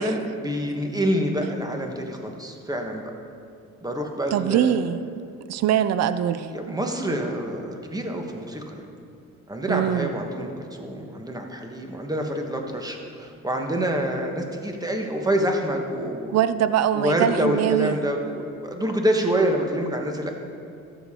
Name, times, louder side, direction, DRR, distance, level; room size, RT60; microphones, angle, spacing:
voice 1, 0.0-3.0 3.8-4.7 6.5-8.9 9.5-16.3 16.9-20.3, equal, 10° right, 2 dB, 1.3 m, -27 dB
voice 2, 4.3-5.2 5.5-6.8 9.7-10.1 16.3-18.0, right 10 dB, 60° right, 13 dB, 0.5 m, -23 dB
13.5 x 7.0 x 3.7 m, 2.4 s
cardioid pair, 90°, 30 cm